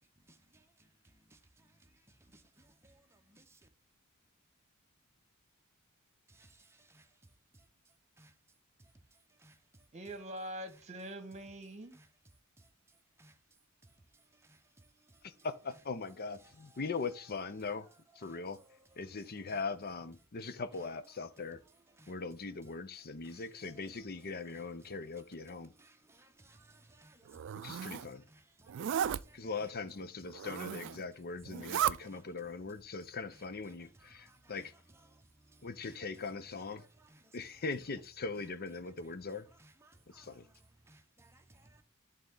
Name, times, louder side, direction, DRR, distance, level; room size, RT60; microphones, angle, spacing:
voice 1, 0.3-0.9 1.3-1.4 3.3-3.6 6.3-7.1 8.2-8.3 9.4-9.6 10.7-10.8 11.9-12.1 13.2-13.3 14.4-14.6 15.1-15.2 16.4-16.8 18.2-18.9 19.1-19.6 20.7-20.8 21.9-22.1 23.2-23.9 24.3-24.6 25.8-29.7 30.8-30.9 31.5-32.6 33.3-36.0 36.8-37.4 38.8-38.9 39.3-40.6 40.9-41.8, right 2 dB, 10° right, 0.9 m, -62 dB
voice 2, 9.9-11.9, right 1 dB, 30° right, 1.5 m, -44 dB
voice 3, 15.2-17.9 18.2-18.6 19.0-21.6 22.1-25.7 27.6-28.2 29.3-34.7 35.6-36.8 37.3-39.5 40.1-40.4, left 4 dB, 45° left, 0.7 m, -40 dB
Zipper (clothing), 27.3-28.1 28.7-29.2 30.3-31.0 31.4-32.0, right 9 dB, 55° right, 0.3 m, -34 dB
11.0 x 3.8 x 3.8 m
head